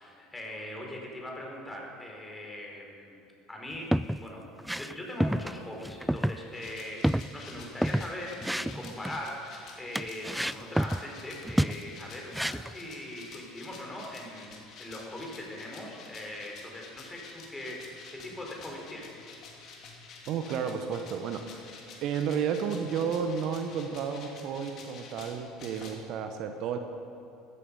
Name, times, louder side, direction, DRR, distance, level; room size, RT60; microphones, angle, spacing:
voice 1, 0.0-3.2 3.5-19.2, left 1 dB, 15° left, -1 dB, 4.7 m, -41 dB
sound 1, 3.7-4.2 4.6-4.9 5.2-5.6 5.8-6.4 6.6-6.7 7.0-8.1 8.4-9.2 10.0-11.1 11.4-11.8 12.3-12.8, equal, 5° right, 0.3 m, -29 dB
sound 2, 6.5-25.9, left 4 dB, 50° left, 3.1 m, -49 dB
voice 2, 20.3-21.7 22.0-26.8, right 7 dB, 55° right, 7 dB, 1.1 m, -32 dB
15.5 x 14.0 x 5.5 m, 2.7 s
hypercardioid pair, 65°, 0 cm